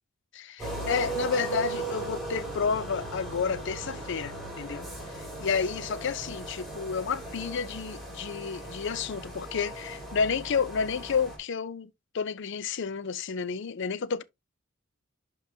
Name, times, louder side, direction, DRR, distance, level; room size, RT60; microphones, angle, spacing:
voice 1, 0.3-4.9 5.2-11.9 12.1-14.2, left 6 dB, 60° left, 0.5 m, -31 dB
sound 1, 0.6-11.4, right 2 dB, ahead, 3.2 m, -37 dB
11.5 x 3.8 x 2.7 m
head